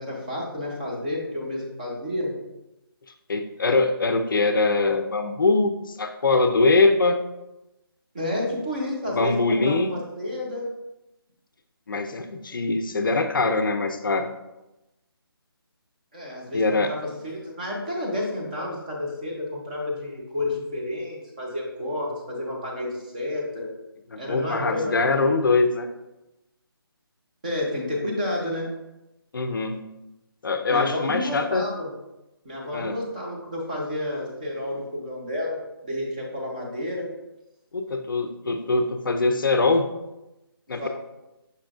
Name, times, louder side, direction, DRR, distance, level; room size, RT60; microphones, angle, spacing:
voice 1, 0.0-2.3 8.1-10.7 16.1-23.7 24.2-25.3 27.4-28.7 30.7-31.9 32.4-37.1 40.8-40.9, left 1 dB, 20° right, -2 dB, 0.6 m, -30 dB
voice 2, 3.3-7.2 9.1-9.9 11.9-14.3 16.5-16.9 24.1-25.9 29.3-29.8 30.4-31.6 32.7-32.9 37.7-39.9 40.7-40.9, left 3 dB, 55° left, 7 dB, 0.4 m, -22 dB
5.6 x 3.6 x 2.4 m, 0.96 s
hypercardioid pair, 175°, 13 cm